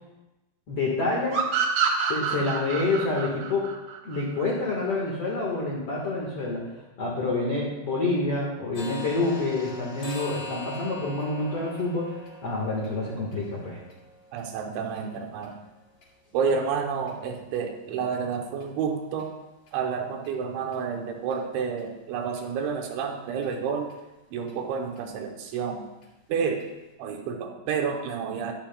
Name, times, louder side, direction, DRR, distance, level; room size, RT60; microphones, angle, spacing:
voice 1, 0.7-1.4 2.1-3.7 4.0-6.7 7.0-13.8, left 3 dB, 70° left, -3 dB, 1.4 m, -28 dB
sound 1, 1.3-4.7, right 7 dB, 65° right, 2.7 m, -27 dB
sound 2, 8.7-16.5 17.0-17.1 17.5-17.7 18.1-18.2 18.6-18.7 19.2-19.3 19.7-19.8 20.2-20.3 20.7-20.8 21.3-21.4 21.8-21.9 22.4-22.5 22.8-22.9 23.4-23.5 23.9-24.0 24.5-24.6 25.0-25.1 25.5-25.6 26.0-26.1 26.6-26.7, left 1 dB, 30° left, 2.3 m, -43 dB
voice 2, 14.3-15.6 16.3-19.3 19.7-23.9 24.3-25.8 26.3-26.6 27.0-28.5, right 6 dB, 80° right, 3 dB, 3.2 m, -29 dB
13.0 x 11.5 x 2.3 m, 1.0 s
omnidirectional pair, 5.5 m